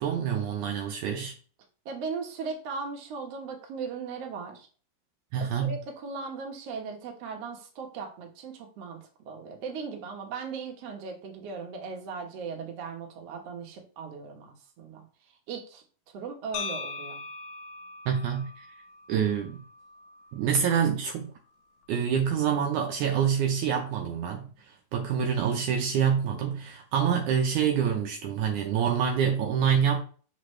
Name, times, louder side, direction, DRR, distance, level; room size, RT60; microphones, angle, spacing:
voice 1, 0.0-1.3 5.3-5.8 18.1-18.6 19.1-19.6 20.3-21.3 21.9-24.5 24.9-30.0, right 7 dB, 90° right, 1.7 m, -26 dB
voice 2, 1.8-4.7 5.4-15.0 15.5-15.8 16.1-17.2, right 5 dB, 65° right, 1.6 m, -38 dB
sound 1, 16.5-20.6, left 5 dB, 80° left, 1.7 m, -41 dB
6.0 x 5.6 x 3.2 m
omnidirectional pair, 4.5 m